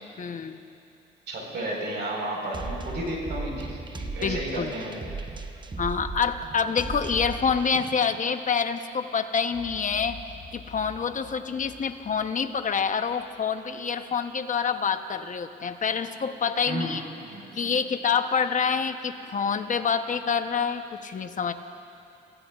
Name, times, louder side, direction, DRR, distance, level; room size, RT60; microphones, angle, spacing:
voice 1, 0.2-0.6 4.2-4.7 5.8-10.2 10.5-17.0 17.5-21.5, left 6 dB, 40° left, 8 dB, 0.9 m, -27 dB
voice 2, 1.3-5.0 16.7-16.9 17.2-17.7, right 1 dB, 60° right, -2 dB, 4.5 m, -33 dB
sound 1, 2.5-8.2, right 3 dB, 25° right, 0.8 m, -37 dB
Boom, 9.5-13.8, left 5 dB, 65° left, 3.0 m, -48 dB
27.5 x 16.0 x 2.4 m, 2.7 s
cardioid pair, 90°, 20 cm